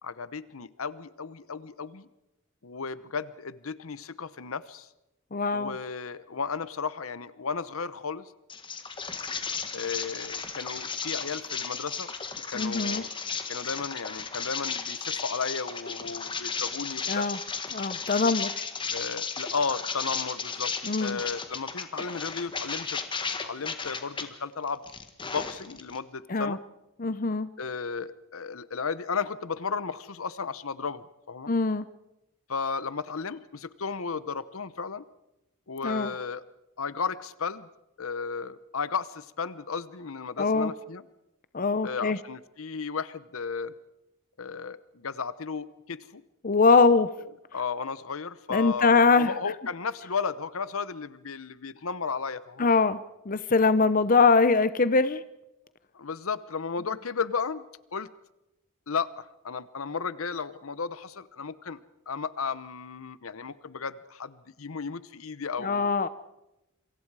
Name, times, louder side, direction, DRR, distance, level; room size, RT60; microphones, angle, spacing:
voice 1, 0.0-2.1 2.6-4.9 5.5-8.3 9.7-12.1 12.5-13.1 13.5-17.3 18.9-20.7 21.0-23.0 23.4-24.9 25.2-26.6 27.6-31.5 32.5-35.0 35.7-36.4 36.8-37.7 38.0-41.0 41.8-43.7 44.4-46.2 47.5-52.7 55.9-57.6 57.9-58.1 58.9-61.8 62.1-65.9, left 5 dB, 80° left, 16 dB, 0.9 m, -34 dB
voice 2, 5.3-5.7 12.5-13.0 17.1-17.4 17.7-18.5 20.8-21.2 26.3-26.6 27.0-27.5 31.5-31.9 35.8-36.1 40.4-40.7 41.5-42.2 46.4-47.1 48.5-49.3 52.6-53.0 53.3-55.2 65.6-66.1, left 4 dB, 40° left, 14 dB, 0.7 m, -22 dB
sound 1, 8.5-24.3 24.7-26.0, left 5 dB, 25° left, 1.7 m, -34 dB
27.5 x 24.0 x 4.8 m, 0.89 s
head